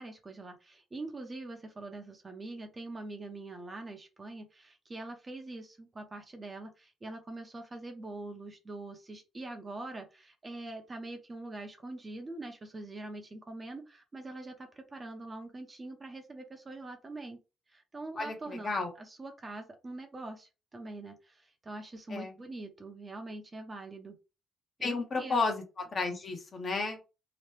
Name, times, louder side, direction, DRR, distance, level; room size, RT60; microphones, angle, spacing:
voice 1, 0.0-17.4 17.7-24.2 24.8-25.4, right 2 dB, 30° right, 0.7 m, -44 dB
voice 2, 18.2-18.9 22.1-22.3 24.8-25.6 25.9-27.0, left 3 dB, 45° left, 0.9 m, -32 dB
2.9 x 2.1 x 3.2 m
cardioid pair, 90°, 0 cm